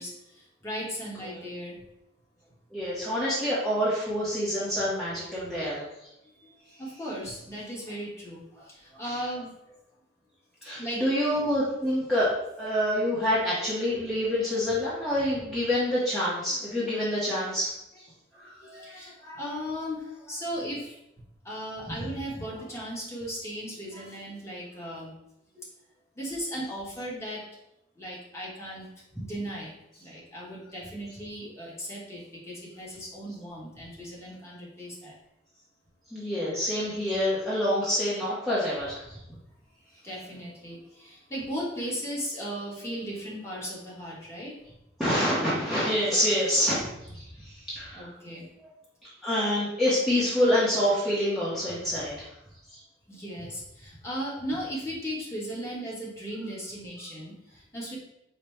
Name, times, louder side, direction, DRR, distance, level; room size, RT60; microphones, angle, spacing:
voice 1, 0.0-1.8 6.8-9.5 10.7-11.0 16.7-16.8 18.6-20.9 21.4-25.1 25.5-25.6 26.2-27.4 28.0-28.9 29.2-35.1 40.0-44.6 47.9-48.5 53.1-58.0, equal, 15° left, -5 dB, 1.1 m, -37 dB
voice 2, 2.7-5.9 10.6-12.3 12.6-17.7 18.4-18.9 36.1-39.2 45.0-48.1 49.2-52.3 52.7-52.8, equal, ahead, -10 dB, 0.8 m, -27 dB
5.1 x 2.2 x 4.3 m, 0.83 s
head